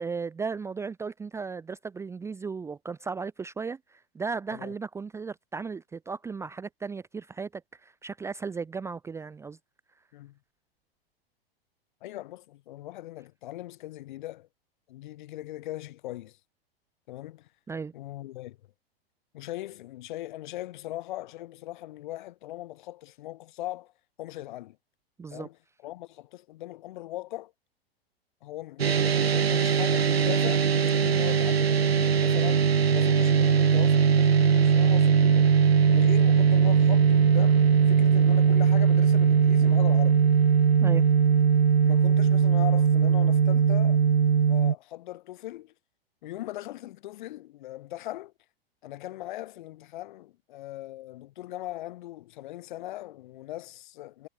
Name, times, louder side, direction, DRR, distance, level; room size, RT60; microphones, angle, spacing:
voice 1, 0.0-9.6 17.7-17.9 25.2-25.5 40.8-41.1, right 5 dB, 10° right, 0.8 m, -36 dB
voice 2, 12.0-14.5 14.9-16.4 17.1-17.5 17.9-18.6 19.3-23.9 24.2-24.8 25.3-25.6 25.8-27.5 28.4-35.5 35.8-40.2 41.8-44.0 44.5-45.7 46.2-48.3 48.8-54.3, left 15 dB, 50° left, 6.2 m, -39 dB
sound 1, 28.8-44.7, right 7 dB, 80° right, 0.7 m, -20 dB
figure-of-eight pair, 100°, 31 cm